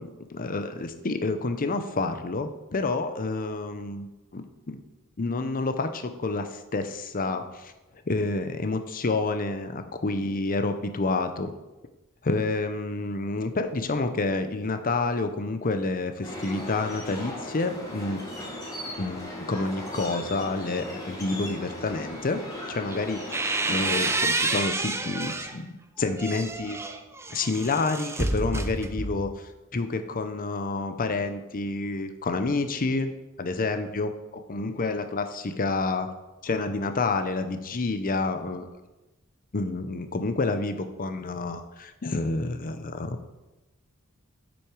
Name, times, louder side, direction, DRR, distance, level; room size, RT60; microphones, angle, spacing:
voice 1, 0.0-4.1 4.3-4.8 5.2-7.7 8.1-11.5 12.2-18.2 19.0-22.4 22.7-23.2 23.7-26.8 27.3-29.3 29.7-33.1 33.4-36.1 36.4-38.7 39.5-43.2, left 3 dB, 40° left, 9 dB, 0.7 m, -29 dB
sound 1, 16.2-24.1, left 1 dB, 20° left, 2.9 m, -37 dB
sound 2, 22.9-25.6 26.0-29.4, right 2 dB, 10° right, 0.5 m, -29 dB
8.3 x 6.2 x 4.8 m, 1.1 s
head